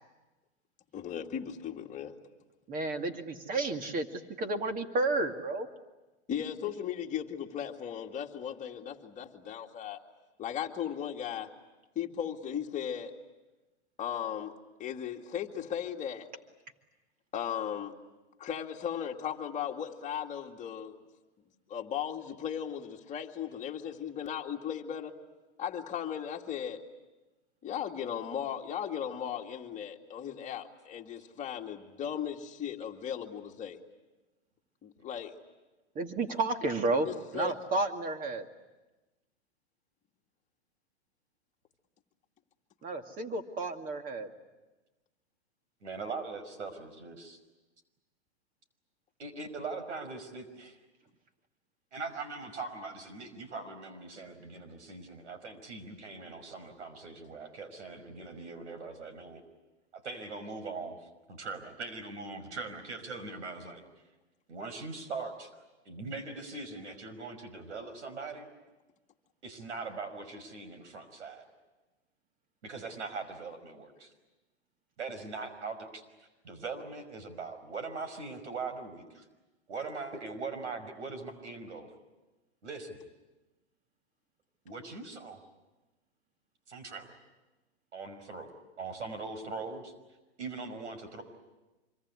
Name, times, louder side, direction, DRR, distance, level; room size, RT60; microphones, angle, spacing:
voice 1, 0.9-2.1 6.3-10.0 10.4-11.5 12.0-13.1 14.0-14.5 14.8-16.3 17.3-17.9 18.4-21.0 21.7-25.1 25.6-26.8 27.6-33.8 34.8-35.3 37.0-37.5, left 9 dB, 20° left, 1 dB, 2.3 m, -37 dB
voice 2, 2.7-5.7 36.0-37.1 37.3-38.5 42.8-44.3, right 2 dB, 25° right, 6 dB, 2.3 m, -31 dB
voice 3, 45.8-47.4 49.2-50.8 51.9-59.4 59.9-61.0 61.3-63.8 64.5-65.5 65.9-68.5 69.4-71.5 72.6-74.1 75.0-76.0 76.4-79.3 79.7-81.9 82.6-83.0 84.7-85.4 86.7-87.1 87.9-88.5 88.8-89.9 90.4-91.2, right 4 dB, 85° right, 8 dB, 5.5 m, -41 dB
25.5 x 24.0 x 9.8 m, 1.1 s
hypercardioid pair, 135°, 34 cm